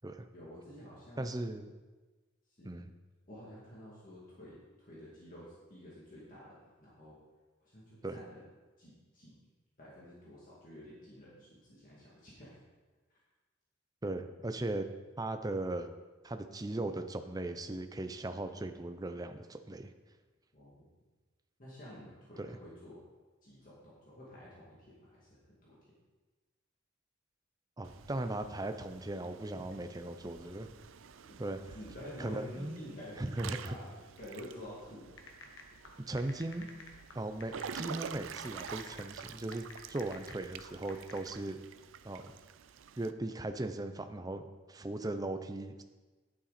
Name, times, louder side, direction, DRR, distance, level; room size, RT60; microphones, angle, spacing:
voice 1, 0.3-1.3 2.6-2.7 3.3-7.2 7.6-8.4 8.8-9.3 9.8-12.6 13.1-13.2 20.5-20.9 21.6-23.0 23.4-25.8 31.2-31.4 31.7-33.9 34.2-35.1, equal, 40° left, -7 dB, 2.4 m, -50 dB
voice 2, 1.2-1.8 2.6-2.9 8.0-8.2 14.0-14.9 15.2-15.9 16.2-19.9 22.4-22.6 27.8-30.7 31.4-31.6 32.2-32.8 33.2-33.7 36.1-36.7 37.1-41.6 42.0-42.3 43.0-44.4 44.7-45.8, right 2 dB, 20° right, 9 dB, 0.5 m, -38 dB
Water / Splash splatter / Drip, 27.8-43.1, right 7 dB, 75° right, 0.5 m, -48 dB
sound 1, 35.2-41.3, left 3 dB, 70° left, 1.4 m, -53 dB
10.0 x 8.7 x 4.2 m, 1.3 s
head